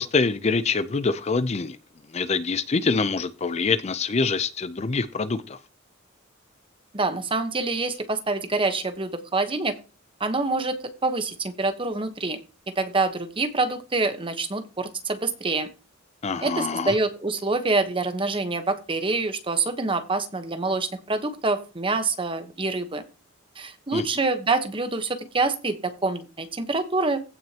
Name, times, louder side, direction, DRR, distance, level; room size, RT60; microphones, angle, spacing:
voice 1, 0.0-1.8 2.1-5.6 16.2-16.9 23.9-24.1, left 4 dB, 35° left, 0.5 m, -25 dB
voice 2, 6.9-9.7 10.2-12.4 12.8-15.7 16.4-23.0 23.6-27.2, right 3 dB, 25° right, 1.1 m, -26 dB
15.5 x 6.3 x 2.9 m
head